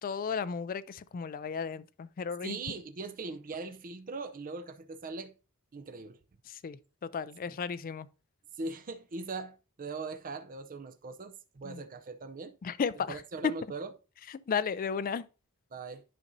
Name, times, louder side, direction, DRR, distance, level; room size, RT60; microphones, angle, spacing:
voice 1, 0.0-2.6 6.5-8.1 11.6-11.8 12.6-13.2 14.5-15.2, left 6 dB, 40° left, 0.3 m, -34 dB
voice 2, 2.4-5.3 5.7-6.2 7.5-7.6 8.6-12.5 13.1-13.9 15.7-16.0, right 3 dB, 40° right, 0.5 m, -40 dB
10.0 x 5.3 x 2.6 m
head